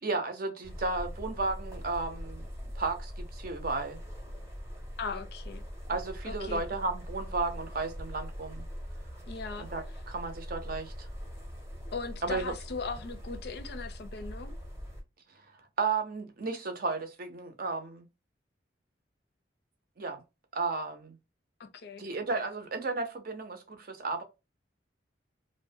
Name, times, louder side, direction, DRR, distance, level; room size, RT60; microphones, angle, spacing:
voice 1, 0.0-2.4 2.7-4.0 5.9-8.6 9.6-11.1 12.2-12.5 15.8-18.1 20.0-20.2 20.5-21.2 22.0-24.2, right 3 dB, 50° right, 0.6 m, -33 dB
sound 1, 0.6-15.0, equal, 15° right, 0.7 m, -42 dB
voice 2, 5.0-5.6 6.2-6.6 9.3-9.7 11.9-14.6 21.6-22.0, left 4 dB, 60° left, 0.4 m, -38 dB
2.5 x 2.1 x 2.6 m
head